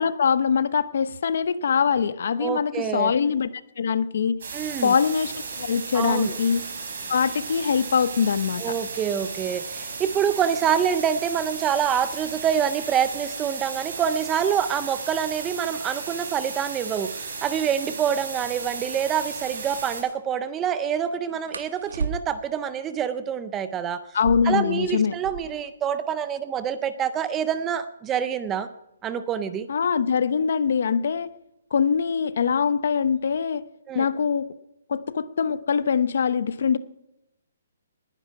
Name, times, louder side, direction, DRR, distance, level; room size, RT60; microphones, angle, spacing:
voice 1, 0.0-3.5 3.8-4.4 4.8-6.6 7.1-8.6 24.1-25.1 29.7-31.3 31.7-33.6 33.9-34.5 34.9-36.8, left 6 dB, 50° left, 15 dB, 0.8 m, -23 dB
voice 2, 2.4-3.1 4.5-4.9 5.9-6.4 8.6-24.0 24.4-28.7 29.0-29.7 33.9-34.0, right 8 dB, 10° right, 12 dB, 0.4 m, -26 dB
sound 1, 4.4-20.0, right 5 dB, 50° right, 4.9 m, -35 dB
sound 2, 21.5-22.6 24.0-25.7 26.0-26.1 26.3-26.9 27.5-30.1 31.1-31.4 31.8-32.3 32.6-33.3, right 5 dB, 90° right, 1.9 m, -36 dB
19.5 x 10.5 x 5.8 m, 0.85 s
hypercardioid pair, 175°, 0 cm